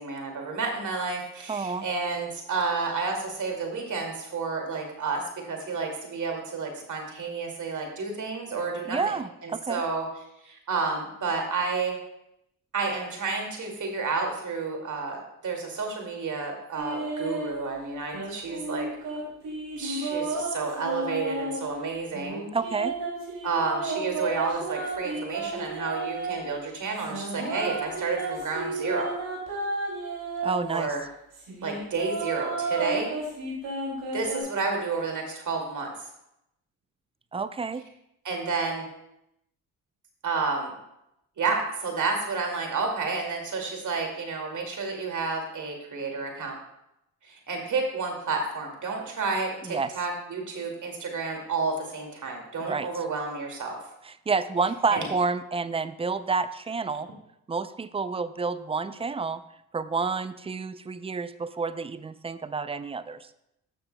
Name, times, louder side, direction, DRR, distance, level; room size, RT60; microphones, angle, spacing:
voice 1, 0.0-9.2 9.4-10.1 10.4-11.9 12.7-18.9 19.1-19.2 19.8-22.4 23.4-29.1 30.7-31.0 31.6-33.1 34.1-35.9 38.2-38.8 40.2-40.7 41.4-46.6 47.2-53.8 54.9-55.1, right 4 dB, 50° right, 2 dB, 2.3 m, -30 dB
voice 2, 1.5-1.9 8.9-9.8 22.5-23.0 30.4-30.9 37.3-37.8 49.6-49.9 52.6-52.9 54.1-57.1 57.5-59.4 59.7-63.2, right 4 dB, 15° right, 13 dB, 0.4 m, -29 dB
sound 1, 16.8-17.5 18.1-21.6 22.1-26.4 26.9-30.8 31.3-34.4, right 2 dB, 70° right, 3.0 m, -32 dB
12.5 x 6.8 x 2.2 m, 0.82 s
supercardioid pair, 70°, 38 cm